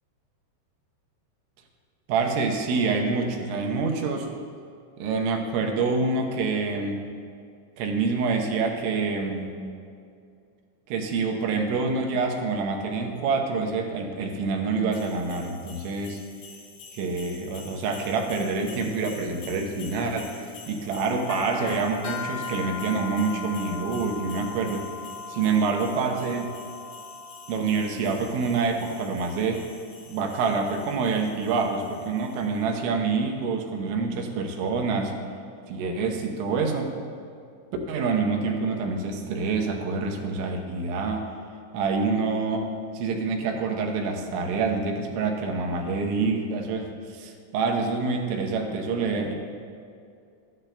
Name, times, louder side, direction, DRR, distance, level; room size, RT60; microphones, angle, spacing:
voice 1, 2.1-4.3 5.0-7.0 7.8-9.5 10.9-16.2 16.9-24.9 25.3-26.5 27.5-29.6 30.1-35.1 35.7-37.0 37.9-41.3 41.7-42.7 42.9-49.4, right 4 dB, 85° right, 2 dB, 3.3 m, -26 dB
sound 1, 14.9-32.6, left 5 dB, 80° left, 3.5 m, -41 dB
13.0 x 12.0 x 2.2 m, 2.4 s
omnidirectional pair, 5.4 m